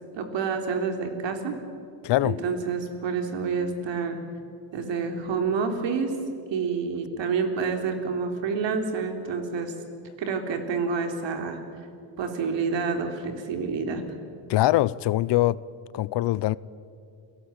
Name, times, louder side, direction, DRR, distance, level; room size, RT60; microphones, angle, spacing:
voice 1, 0.1-1.6 2.2-4.2 4.7-6.2 6.5-9.7 10.2-11.6 12.2-14.0, right 5 dB, 65° right, 3.7 m, -28 dB
voice 2, 2.0-2.4 14.5-15.6 15.9-16.6, left 16 dB, 60° left, 0.7 m, -23 dB
29.0 x 17.5 x 8.9 m
cardioid pair, 120°, 47 cm